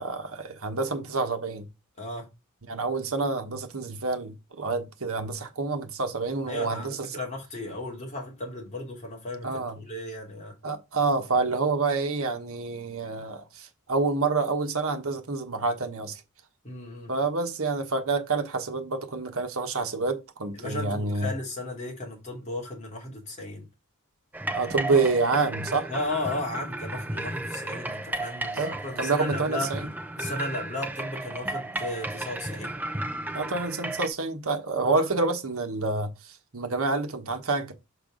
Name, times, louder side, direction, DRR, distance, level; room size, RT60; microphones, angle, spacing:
voice 1, 0.0-1.7 2.7-7.1 9.4-9.8 10.6-16.2 17.1-21.3 24.5-25.9 28.5-29.9 33.3-37.7, right 3 dB, 65° right, 1.3 m, -28 dB
voice 2, 2.0-2.3 6.5-10.6 16.6-17.1 20.5-23.6 25.9-29.7 30.2-32.8 34.8-35.0, left 2 dB, 35° left, 2.8 m, -35 dB
sound 1, 24.3-34.1, right 1 dB, 10° right, 0.7 m, -34 dB
6.9 x 5.0 x 3.9 m
head